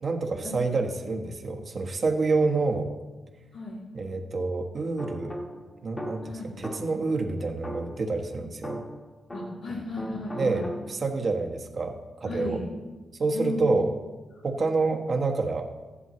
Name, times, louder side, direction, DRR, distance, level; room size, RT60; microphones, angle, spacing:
voice 1, 0.0-2.9 3.9-5.3 5.8-8.8 10.3-12.6 13.2-13.9 14.4-15.7, right 3 dB, 45° right, 3 dB, 1.3 m, -28 dB
sound 1, 5.0-7.1 7.6-9.7 10.0-11.2, equal, 15° left, 1.4 m, -39 dB
voice 2, 6.2-6.6 9.3-10.6 12.2-12.7 13.3-13.7, left 2 dB, 90° left, -8 dB, 3.0 m, -35 dB
15.0 x 11.0 x 3.1 m, 1.2 s
cardioid pair, 115°, 0 cm